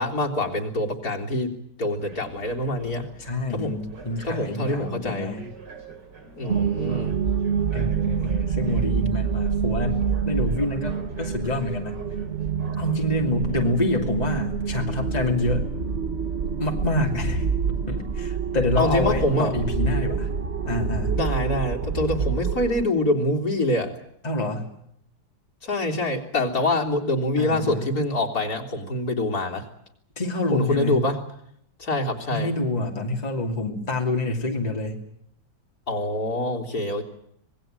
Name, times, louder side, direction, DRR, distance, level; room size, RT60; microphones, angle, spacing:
voice 1, 0.0-1.5 1.8-3.1 3.5-3.8 4.2-5.3 6.4-7.1 18.8-19.5 21.1-23.9 25.6-29.6 30.5-31.2 31.8-32.5 35.9-37.0, left 1 dB, 60° left, 0 dB, 4.0 m, -25 dB
sound 1, 2.0-14.3, right 4 dB, 80° right, 3.8 m, -46 dB
voice 2, 3.2-5.5 7.7-12.0 12.8-15.7 16.6-20.3 20.6-21.2 24.2-24.7 27.4-27.9 30.2-31.0 32.3-35.0, left 2 dB, 20° left, 2 dB, 2.8 m, -27 dB
sound 2, 6.5-22.8, right 6 dB, 40° right, 1.4 m, -27 dB
26.0 x 20.5 x 9.0 m, 0.73 s
omnidirectional pair, 1.9 m